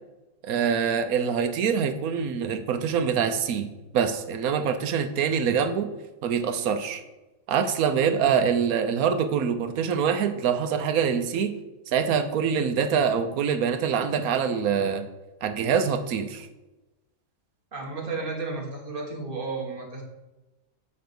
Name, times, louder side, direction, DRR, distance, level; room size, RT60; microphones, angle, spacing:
voice 1, 0.4-3.7 3.9-5.9 6.2-7.0 7.5-11.6 11.9-15.1 15.4-16.5, right 7 dB, 80° right, 9 dB, 1.2 m, -25 dB
voice 2, 17.7-20.0, right 3 dB, 40° right, 0 dB, 1.5 m, -33 dB
8.4 x 3.2 x 6.0 m, 1.1 s
omnidirectional pair, 1.5 m